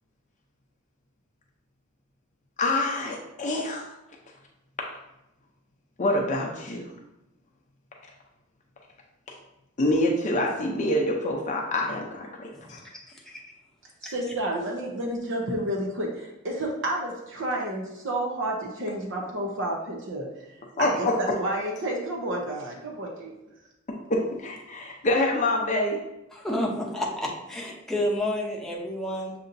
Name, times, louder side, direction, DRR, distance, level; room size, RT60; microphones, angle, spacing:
voice 1, 2.6-3.9 6.0-6.9 9.8-12.8 20.8-21.1 24.1-26.0, left 1 dB, 35° left, -1 dB, 0.6 m, -26 dB
voice 2, 13.1-13.4 14.0-14.1 26.3-29.3, left 1 dB, ahead, -3 dB, 0.7 m, -30 dB
voice 3, 14.1-20.3 20.8-23.3, right 1 dB, 65° right, -1 dB, 0.8 m, -30 dB
6.7 x 2.8 x 2.6 m, 0.93 s
head